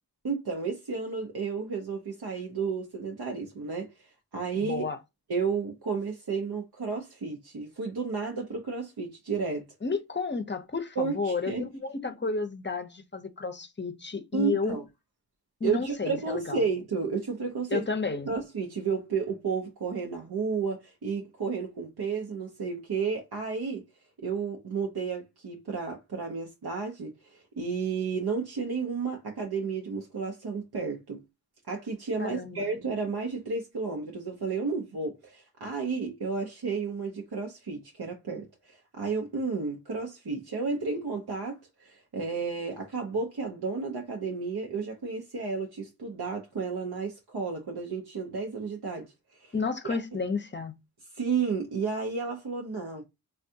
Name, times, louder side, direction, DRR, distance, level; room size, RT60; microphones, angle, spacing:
voice 1, 0.2-3.9 4.3-4.8 5.3-9.6 11.0-11.6 14.3-14.8 15.6-17.8 18.3-23.8 24.2-31.2 31.7-49.1 49.4-49.5 49.8-50.0 51.1-53.0, right 5 dB, 85° right, 0.7 m, -32 dB
voice 2, 4.6-5.0 9.8-14.8 15.6-16.6 17.7-18.3 32.2-32.7 49.5-50.8, left 4 dB, 30° left, 0.5 m, -31 dB
3.4 x 2.3 x 2.6 m
wide cardioid pair, 45°, 37 cm